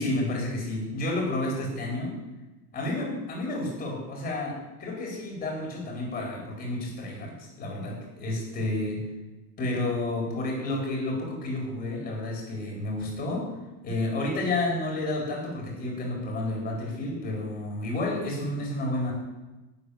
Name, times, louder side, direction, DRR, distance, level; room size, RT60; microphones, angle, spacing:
voice 1, 0.0-2.1 2.7-9.0 9.6-13.4 13.8-19.1, left 2 dB, 25° left, -1 dB, 4.3 m, -30 dB
10.5 x 8.8 x 8.5 m, 1.1 s
cardioid pair, 165°, 33 cm